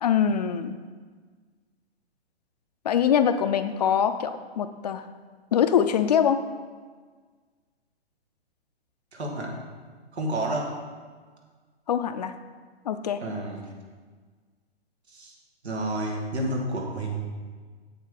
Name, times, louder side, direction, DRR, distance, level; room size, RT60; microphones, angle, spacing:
voice 1, 0.0-0.8 2.8-5.1 5.5-6.4 11.9-12.3 12.9-13.2, left 8 dB, 40° left, 10 dB, 0.4 m, -23 dB
voice 2, 9.1-9.6 10.1-10.8 13.2-13.6 15.1-15.3 15.6-17.2, right 1 dB, 85° right, 0 dB, 2.2 m, -30 dB
7.6 x 7.4 x 3.9 m, 1.5 s
hypercardioid pair, 145°, 32 cm